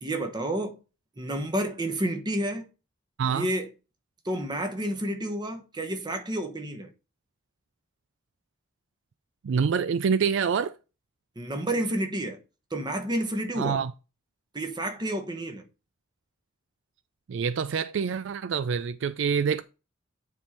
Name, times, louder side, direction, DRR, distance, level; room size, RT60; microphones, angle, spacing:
voice 1, 0.0-0.8 1.2-2.7 3.2-3.7 4.2-6.9 11.4-12.4 12.7-13.8 14.5-15.6, right 1 dB, 20° right, 1.1 m, -30 dB
voice 2, 9.4-10.7 13.6-13.9 17.3-19.6, right 6 dB, 65° right, 0.4 m, -26 dB
9.3 x 3.7 x 4.3 m
head